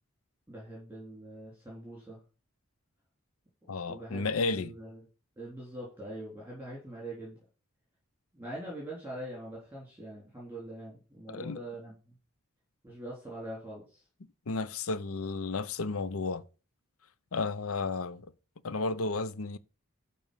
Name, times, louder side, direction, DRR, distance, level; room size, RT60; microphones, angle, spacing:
voice 1, 0.5-2.2 3.8-5.0 5.4-7.4 8.3-12.2 12.8-14.0, right 1 dB, 10° right, 3.6 m, -43 dB
voice 2, 3.7-4.7 11.3-11.6 14.5-16.4 17.3-18.3 18.6-19.6, left 3 dB, 75° left, 0.7 m, -32 dB
12.0 x 4.2 x 6.9 m
head